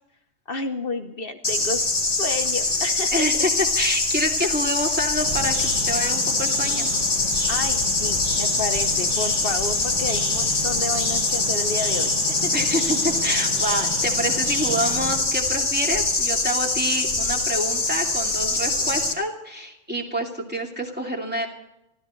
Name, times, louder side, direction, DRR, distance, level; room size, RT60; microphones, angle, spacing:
voice 1, 0.5-1.9 2.2-3.3 7.5-12.1 12.4-12.7, left 3 dB, 75° left, 5 dB, 0.5 m, -30 dB
sound 1, 1.4-19.1, left 3 dB, 20° left, 1.9 m, -23 dB
voice 2, 3.1-3.5 3.8-6.9 12.5-21.5, equal, 5° right, -1 dB, 2.5 m, -27 dB
sound 2, 5.1-15.2, right 1 dB, 60° right, 8.9 m, -35 dB
24.5 x 16.0 x 3.2 m, 0.87 s
omnidirectional pair, 2.4 m